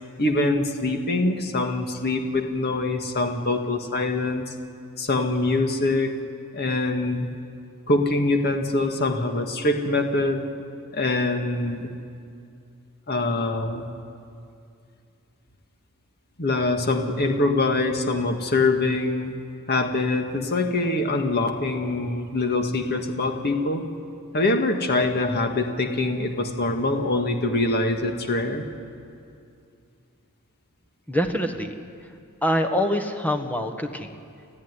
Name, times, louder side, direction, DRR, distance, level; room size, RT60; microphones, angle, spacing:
voice 1, 0.2-4.5 5.0-6.2 6.5-7.3 7.9-10.5 10.9-11.9 13.1-13.9 16.4-19.3 19.7-23.9 24.3-28.7, left 2 dB, 50° left, 4 dB, 2.0 m, -24 dB
voice 2, 31.1-32.1 32.4-34.1, equal, 5° left, 5 dB, 1.5 m, -25 dB
30.0 x 14.0 x 9.8 m, 2.5 s
head